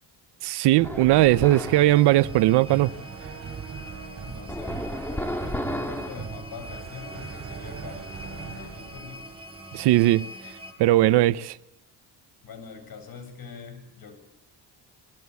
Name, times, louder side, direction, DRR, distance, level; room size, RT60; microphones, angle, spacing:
voice 1, 0.4-2.9 9.7-10.2 10.8-11.6, right 16 dB, 80° right, 0.8 m, -19 dB
sound 1, 0.8-1.9 4.5-6.2, left 1 dB, 5° left, 2.9 m, -32 dB
sound 2, 0.8-10.2, right 6 dB, 40° right, 6.4 m, -40 dB
sound 3, 1.1-10.7, equal, 15° right, 6.5 m, -44 dB
voice 2, 4.2-9.2 12.4-14.2, left 6 dB, 60° left, 8.0 m, -43 dB
23.5 x 21.5 x 8.3 m
supercardioid pair, 75°, 41 cm